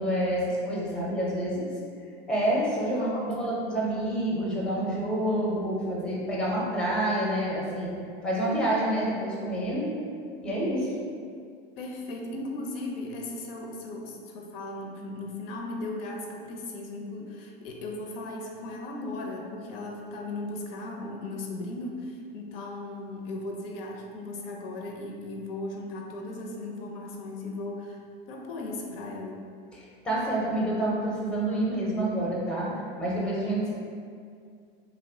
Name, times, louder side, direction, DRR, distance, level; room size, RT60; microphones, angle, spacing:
voice 1, 0.0-1.7 2.3-7.9 8.2-9.9 10.4-10.9 29.7-32.7 33.0-33.8, right 1 dB, 5° left, -5 dB, 0.5 m, -28 dB
voice 2, 2.9-3.2 11.8-28.0 28.3-29.5, left 2 dB, 75° left, 0 dB, 0.5 m, -37 dB
2.7 x 2.1 x 2.6 m, 2.3 s
hypercardioid pair, 105°, 29 cm